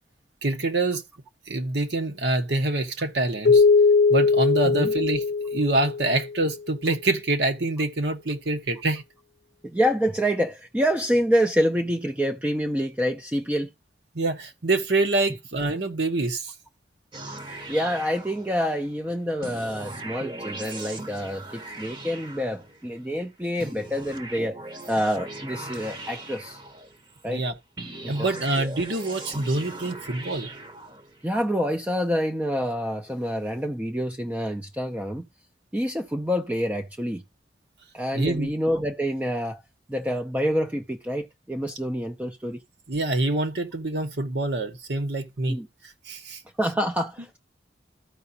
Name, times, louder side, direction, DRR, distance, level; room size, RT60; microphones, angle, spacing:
voice 1, 0.4-1.0 1.5-3.6 4.1-5.2 5.5-9.0 14.1-16.5 27.3-27.5 28.1-30.5 38.1-38.5 42.9-45.6 46.1-46.4, right 2 dB, 75° right, 1.1 m, -25 dB
Keyboard (musical), 3.5-6.4, left 4 dB, 60° left, 0.6 m, -20 dB
voice 2, 9.6-13.7 17.3-24.6 24.9-26.6 27.2-27.4 28.0-28.3 31.2-35.3 35.7-37.2 37.9-39.6 39.9-42.6 45.5-45.7 46.6-47.4, equal, 10° right, 0.4 m, -27 dB
sound 1, 17.1-18.9 19.4-23.0 23.6-27.2 27.8-31.3, right 2 dB, 25° right, 0.9 m, -39 dB
14.5 x 4.8 x 2.8 m
head